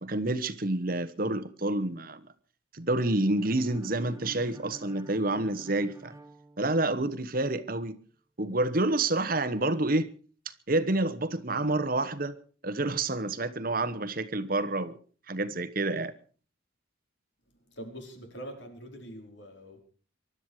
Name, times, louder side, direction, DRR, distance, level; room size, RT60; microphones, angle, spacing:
voice 1, 0.0-2.2 2.7-6.1 6.6-8.0 8.4-10.1 10.7-12.4 12.6-15.0 15.3-16.1, right 2 dB, 45° right, 1.1 m, -28 dB
sound 1, 3.4-7.3, right 1 dB, 15° right, 1.2 m, -48 dB
voice 2, 17.5-19.8, equal, 60° left, 4.8 m, -44 dB
24.5 x 12.5 x 4.8 m
head